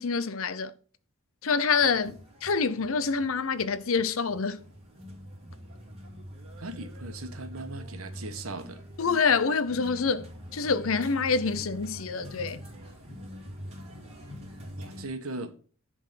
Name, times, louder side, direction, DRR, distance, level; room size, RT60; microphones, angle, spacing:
voice 1, 0.0-0.7 1.4-2.1 2.4-4.6 9.0-12.6, left 5 dB, 70° left, 0.7 m, -26 dB
sound 1, 1.8-15.0, equal, 30° right, 2.6 m, -44 dB
voice 2, 6.6-8.8 14.8-15.5, right 2 dB, 85° right, 1.2 m, -38 dB
10.5 x 3.7 x 5.8 m
head